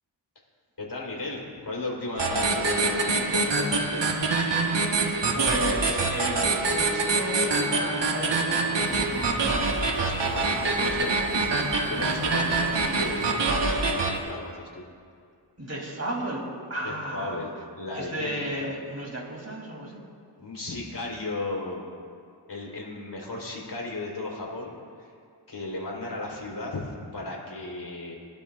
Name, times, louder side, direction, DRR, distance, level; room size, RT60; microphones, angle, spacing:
voice 1, 0.8-4.0 10.0-13.8 14.0-14.8 16.8-18.7 20.4-21.8 22.5-25.1 25.5-28.2, left 2 dB, 60° left, -3 dB, 3.9 m, -35 dB
sound 1, 2.2-14.2, right 3 dB, 65° right, 1.5 m, -25 dB
voice 2, 5.3-9.4 15.6-17.4 17.9-20.0, right 1 dB, 35° right, -1 dB, 3.2 m, -34 dB
sound 2, 8.9-13.3, left 2 dB, 20° left, 0.9 m, -40 dB
24.5 x 12.0 x 2.5 m, 2.2 s
cardioid pair, 60°, 45 cm